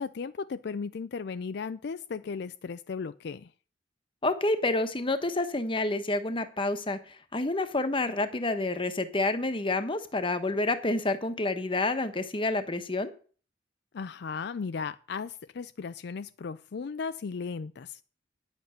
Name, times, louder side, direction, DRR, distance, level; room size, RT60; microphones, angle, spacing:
voice 1, 0.0-3.5 13.9-18.0, left 5 dB, 60° left, 0.4 m, -36 dB
voice 2, 4.2-13.1, left 2 dB, 30° left, 1.2 m, -29 dB
10.0 x 8.0 x 6.4 m
head